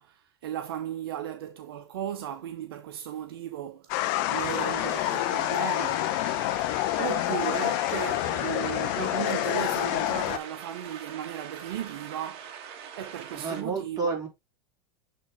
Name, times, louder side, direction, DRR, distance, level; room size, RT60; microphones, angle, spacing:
voice 1, 0.0-6.1 7.0-12.5 12.9-14.0, right 10 dB, 80° right, 0.7 m, -36 dB
sound 1, 3.9-10.4, left 17 dB, 60° left, 0.7 m, -27 dB
sound 2, 4.3-13.6, right 8 dB, 50° right, 1.6 m, -43 dB
voice 2, 13.3-14.3, right 4 dB, 30° right, 3.9 m, -30 dB
7.5 x 3.7 x 3.6 m
hypercardioid pair, 100°, 12 cm